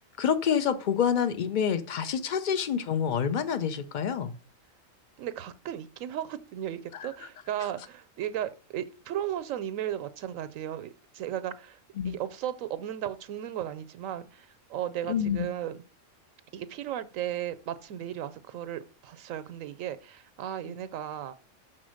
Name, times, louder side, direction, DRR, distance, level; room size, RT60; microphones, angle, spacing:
voice 1, 0.2-4.3 7.0-7.1 12.0-12.1 15.1-15.5, left 7 dB, 50° left, 0.6 m, -27 dB
voice 2, 5.2-11.8 12.0-15.8 16.5-21.3, right 11 dB, 80° right, 1.0 m, -35 dB
6.1 x 4.1 x 6.3 m
omnidirectional pair, 1.4 m